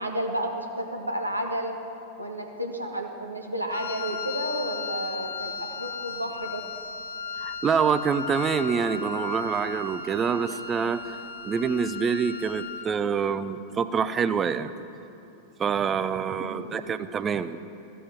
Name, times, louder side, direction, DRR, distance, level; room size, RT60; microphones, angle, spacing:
voice 1, 0.0-1.8 2.2-6.6 16.4-17.0, right 1 dB, 85° right, 3 dB, 1.2 m, -32 dB
Wind instrument woodwind instrument, 3.7-13.0, left 5 dB, 65° left, 0.6 m, -36 dB
voice 2, 7.4-14.7 15.6-17.6, right 6 dB, 25° right, 13 dB, 0.5 m, -26 dB
14.0 x 7.8 x 7.6 m, 2.7 s
figure-of-eight pair, 90°, 0 cm